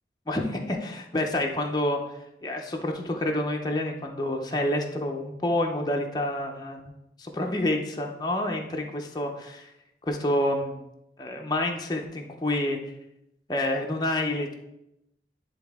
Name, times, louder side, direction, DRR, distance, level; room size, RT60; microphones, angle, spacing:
voice 1, 0.3-6.9 7.2-9.7 10.0-10.8 11.2-12.8 13.5-14.5, left 1 dB, 25° left, 1 dB, 0.6 m, -28 dB
10.0 x 3.5 x 3.5 m, 0.86 s
head